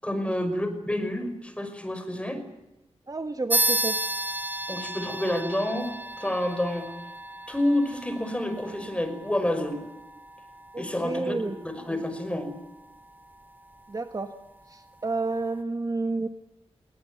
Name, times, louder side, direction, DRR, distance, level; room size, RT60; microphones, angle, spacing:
voice 1, 0.0-2.4 4.7-5.9 6.2-6.9 7.5-9.8 10.8-12.6, left 1 dB, 10° left, 8 dB, 5.5 m, -29 dB
voice 2, 3.1-4.0 10.7-11.5 13.9-14.3 14.7-16.3, right 3 dB, 35° right, 9 dB, 1.5 m, -30 dB
sound 1, 3.5-13.5, right 1 dB, 15° right, 0.9 m, -33 dB
20.0 x 20.0 x 9.7 m, 1.0 s
cardioid pair, 70°, 11 cm